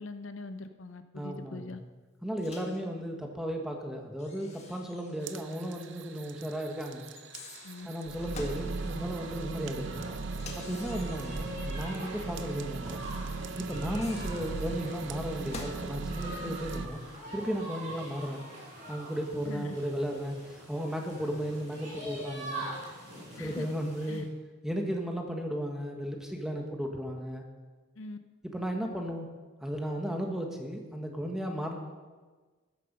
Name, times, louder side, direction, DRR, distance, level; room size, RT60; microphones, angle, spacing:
voice 1, 0.0-1.8 7.6-7.9 19.4-19.8 23.4-23.7 24.1-24.3 28.0-28.2, left 3 dB, 70° left, 9 dB, 0.7 m, -42 dB
voice 2, 1.1-1.8 2.2-7.1 7.9-10.0 10.5-13.0 13.6-17.0 17.3-18.4 18.9-22.7 23.4-24.3 24.6-27.4 28.5-29.3 29.6-31.8, equal, 5° right, 2 dB, 1.3 m, -35 dB
Microwave oven, 2.4-2.8 4.2-5.6 5.8-5.9 7.1-8.7 10.3-11.7 13.7-15.9, left 3 dB, 35° left, 1.6 m, -47 dB
sound 1, 5.2-16.9, right 3 dB, 60° right, 0.6 m, -38 dB
sound 2, 8.3-24.2, right 1 dB, 40° right, 4.8 m, -45 dB
13.5 x 10.5 x 5.4 m, 1.4 s
head